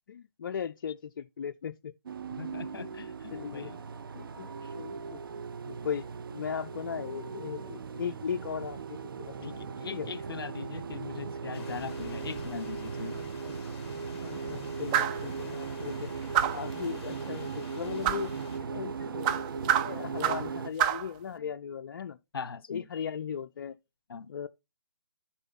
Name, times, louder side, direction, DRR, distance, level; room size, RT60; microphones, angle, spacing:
voice 1, 0.1-1.9 2.8-2.9 3.3-3.8 4.1-5.2 5.6-10.1 13.0-13.6 14.2-16.1 16.5-18.3 18.7-22.2 22.7-23.8 24.3-24.5, left 7 dB, 50° left, 0.4 m, -38 dB
sound 1, 2.1-20.7, right 5 dB, 60° right, 0.7 m, -38 dB
voice 2, 2.3-3.7 4.6-4.7 9.4-13.2 18.6-18.7 21.4-21.5 22.3-22.8 24.1-24.3, left 6 dB, 65° left, 0.9 m, -40 dB
sound 2, 11.5-18.6, left 6 dB, 30° left, 1.8 m, -49 dB
sound 3, 14.9-15.2 16.3-16.7 18.0-18.3 19.2-20.5 20.8-21.1, right 10 dB, 15° right, 0.4 m, -27 dB
9.8 x 4.3 x 4.1 m
hypercardioid pair, 150°, 13 cm